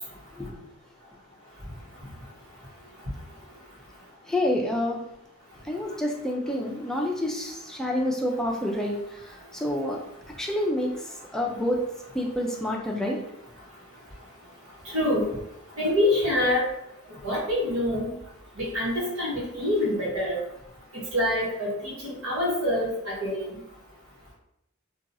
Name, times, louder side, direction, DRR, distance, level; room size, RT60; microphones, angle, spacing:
voice 1, 4.3-5.0 5.7-9.0 9.5-10.0 10.4-10.9 11.3-11.8 12.1-13.2, left 1 dB, 5° left, -1 dB, 0.4 m, -27 dB
voice 2, 14.9-15.2 15.8-16.6 17.2-18.1 18.6-20.4 20.9-23.5, left 1 dB, 80° right, -4 dB, 1.1 m, -26 dB
2.8 x 2.3 x 2.6 m, 0.81 s
head